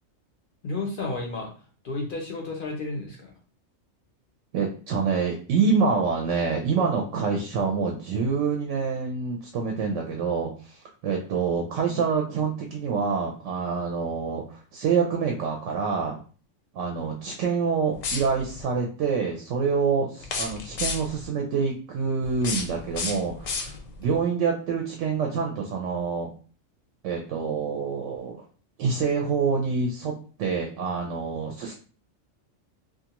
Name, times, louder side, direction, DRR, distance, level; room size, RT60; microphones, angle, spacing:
voice 1, 0.6-1.5 1.8-3.3, left 3 dB, 55° left, 1 dB, 0.6 m, -32 dB
voice 2, 4.5-16.2 16.7-23.7 24.0-26.3 27.0-28.5 28.8-30.1 30.4-31.7, right 5 dB, 70° right, 1 dB, 0.9 m, -26 dB
sound 1, 17.9-18.6 20.2-21.3 22.2-24.1, left 4 dB, 85° left, 1.0 m, -32 dB
2.4 x 2.3 x 2.8 m, 0.38 s
omnidirectional pair, 1.3 m